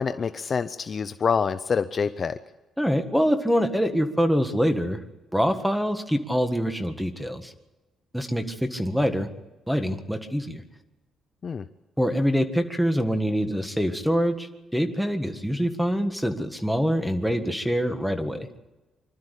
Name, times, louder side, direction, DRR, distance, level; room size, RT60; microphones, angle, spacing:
voice 1, 0.0-2.4 11.4-11.6, left 6 dB, 35° left, 11 dB, 0.6 m, -26 dB
voice 2, 2.8-5.0 5.3-7.5 8.1-9.3 9.7-10.6 12.0-18.5, equal, ahead, 7 dB, 1.7 m, -25 dB
25.5 x 12.5 x 8.3 m, 1.1 s
cardioid pair, 145°, 0 cm